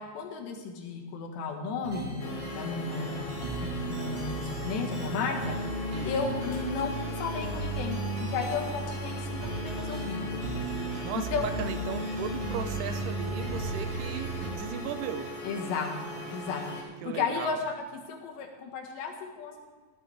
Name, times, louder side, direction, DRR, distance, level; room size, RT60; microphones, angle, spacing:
voice 1, 0.0-2.1 2.5-10.4 11.1-11.5 15.4-19.7, left 5 dB, 90° left, 2 dB, 3.8 m, -34 dB
sound 1, 1.8-14.5, right 2 dB, 50° right, 1.8 m, -35 dB
sound 2, 2.2-16.8, left 2 dB, 65° left, 3.6 m, -40 dB
voice 2, 5.9-6.4 11.0-15.3 17.0-17.6, right 8 dB, 80° right, 10 dB, 2.7 m, -37 dB
17.0 x 11.5 x 3.5 m, 1.4 s
omnidirectional pair, 4.8 m